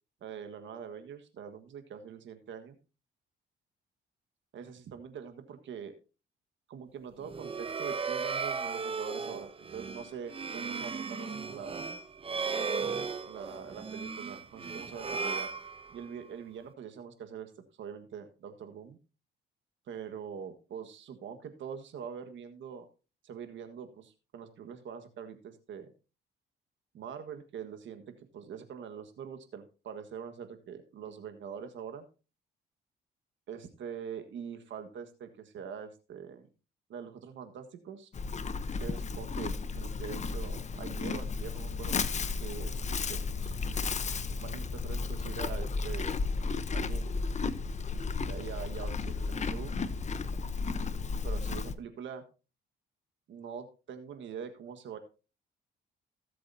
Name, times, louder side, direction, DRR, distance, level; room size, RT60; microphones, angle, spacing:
voice 1, 0.2-2.8 4.5-5.9 6.7-11.9 13.2-15.5 15.9-17.5 17.8-19.0 19.9-22.9 23.2-25.9 26.9-32.0 33.5-36.5 36.9-38.1 38.8-42.1 42.4-43.5 44.4-46.2 46.7-47.1 48.2-49.7 51.2-52.2 53.3-55.0, right 7 dB, 70° right, 7 dB, 1.6 m, -44 dB
sound 1, 7.2-16.3, right 5 dB, 30° right, 0.8 m, -36 dB
Livestock farm animals working animals, 38.1-51.8, left 4 dB, 35° left, 0.9 m, -33 dB
17.5 x 7.7 x 2.8 m, 0.32 s
cardioid pair, 90°, 20 cm